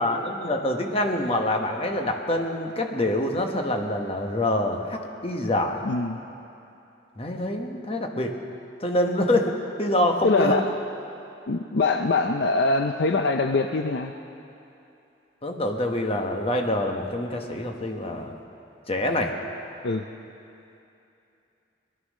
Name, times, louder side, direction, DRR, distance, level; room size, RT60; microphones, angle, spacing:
voice 1, 0.0-5.8 7.2-8.3 8.8-9.5 9.8-10.6 15.4-18.3 18.9-19.3, left 1 dB, 30° left, 3 dB, 1.1 m, -25 dB
voice 2, 5.8-6.2 10.2-10.7 11.5-14.1 19.8-20.1, left 3 dB, 60° left, 5 dB, 0.5 m, -23 dB
18.5 x 11.5 x 6.3 m, 2.7 s
head